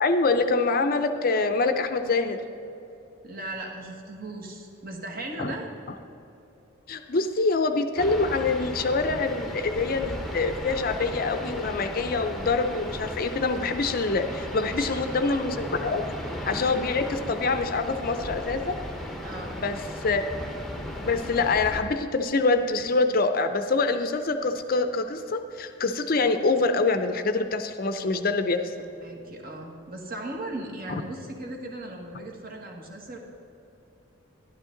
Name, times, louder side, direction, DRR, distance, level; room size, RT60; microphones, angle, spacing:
voice 1, 0.0-2.4 5.4-5.5 6.9-16.0 16.4-18.8 19.5-20.3 21.0-28.7, left 3 dB, 45° left, 8 dB, 0.5 m, -25 dB
voice 2, 3.2-5.7 14.6-15.0 19.2-19.6 28.8-33.2, right 2 dB, 45° right, 1 dB, 1.5 m, -37 dB
sound 1, 8.0-21.8, left 1 dB, ahead, 0.8 m, -36 dB
12.0 x 11.0 x 3.8 m, 3.0 s
head